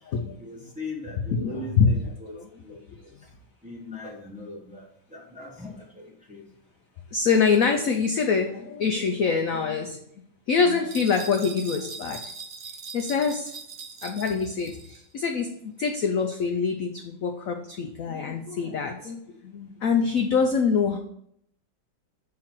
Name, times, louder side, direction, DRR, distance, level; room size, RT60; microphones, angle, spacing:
voice 1, 0.4-3.1 3.6-6.5, left 2 dB, 5° right, -1 dB, 0.8 m, -40 dB
voice 2, 1.3-1.9 2.4-2.5 7.1-10.0 10.5-12.2 12.9-13.5 14.0-14.7 15.1-19.2 19.4-21.0, left 5 dB, 70° left, 4 dB, 0.8 m, -24 dB
sound 1, 10.9-15.0, right 5 dB, 90° right, 0.6 m, -41 dB
7.4 x 3.8 x 4.5 m, 0.70 s
omnidirectional pair, 2.1 m